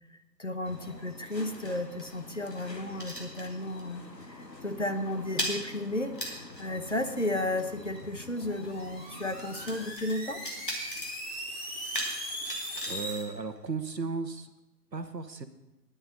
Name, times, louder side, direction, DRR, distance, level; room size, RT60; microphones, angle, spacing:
voice 1, 0.4-4.0 4.3-10.4, left 1 dB, 45° left, 7 dB, 0.9 m, -33 dB
sound 1, 0.6-10.0, left 2 dB, 80° left, 1.6 m, -48 dB
sound 2, 0.6-4.5 4.7-14.1, equal, 30° left, 1.7 m, -41 dB
sound 3, 8.4-13.2, right 1 dB, 20° right, 2.3 m, -39 dB
voice 2, 12.9-14.5 14.9-15.5, right 4 dB, 80° right, 9 dB, 1.3 m, -35 dB
10.0 x 9.8 x 5.2 m, 0.98 s
figure-of-eight pair, 165°, 49 cm